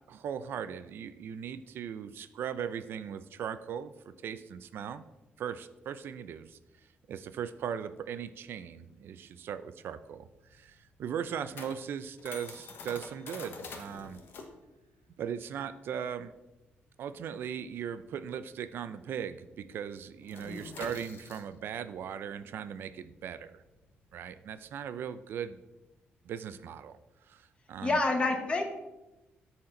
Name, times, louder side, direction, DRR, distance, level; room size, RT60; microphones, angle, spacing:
voice 1, 0.1-3.9 4.2-5.0 5.4-6.6 7.1-14.2 15.2-16.3 17.0-23.6 24.1-25.6 26.2-27.0 27.3-28.0, right 8 dB, 70° right, 12 dB, 0.5 m, -38 dB
sound 1, 10.0-19.0 19.3-19.5 19.8-25.6, left 4 dB, 65° left, 1.1 m, -49 dB
voice 2, 20.4-20.8 27.8-28.6, left 2 dB, 25° left, 3 dB, 1.2 m, -28 dB
13.0 x 4.3 x 3.8 m, 1.0 s
cardioid pair, 140°, 4 cm